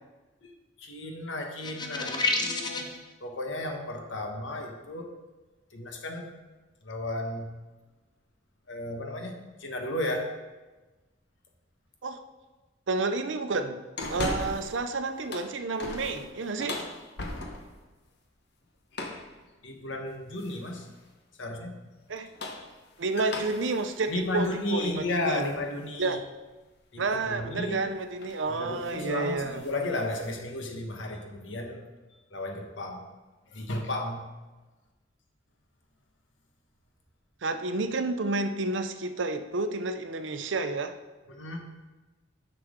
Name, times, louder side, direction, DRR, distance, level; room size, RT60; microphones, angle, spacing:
voice 1, 0.8-2.9 3.2-5.1 5.7-6.3 6.8-7.5 8.7-10.3 19.6-20.9 21.4-21.8 24.1-26.2 26.9-27.9 28.5-31.8 32.3-33.1 33.5-34.2 41.3-41.6, left 1 dB, 90° left, 4 dB, 1.2 m, -33 dB
sound 1, 1.6-3.0, left 3 dB, 25° left, 0.7 m, -29 dB
voice 2, 12.9-13.8 14.1-16.8 22.1-22.3 23.0-25.5 26.0-26.2 27.0-29.6 37.4-41.0, right 3 dB, 75° right, 8 dB, 0.6 m, -30 dB
sound 2, 14.0-14.8 15.2-17.8 18.9-19.3 20.4-20.8 22.1-25.6 26.0-26.1 27.7-27.9 28.2-28.5 28.8-29.0 29.4-30.4, left 2 dB, 60° left, 1.0 m, -38 dB
10.0 x 5.9 x 3.7 m, 1.2 s
head